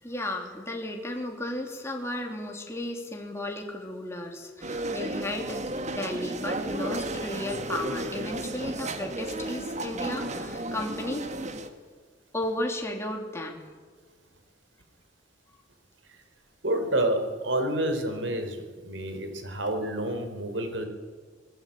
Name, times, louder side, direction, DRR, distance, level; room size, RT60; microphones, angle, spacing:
voice 1, 0.0-11.2 12.3-13.7, left 1 dB, 15° left, 1 dB, 3.0 m, -34 dB
sound 1, 4.6-11.7, right 1 dB, 40° right, 2.1 m, -33 dB
voice 2, 16.6-20.9, right 1 dB, 80° right, 7 dB, 4.4 m, -29 dB
25.5 x 20.5 x 8.8 m, 1.5 s
head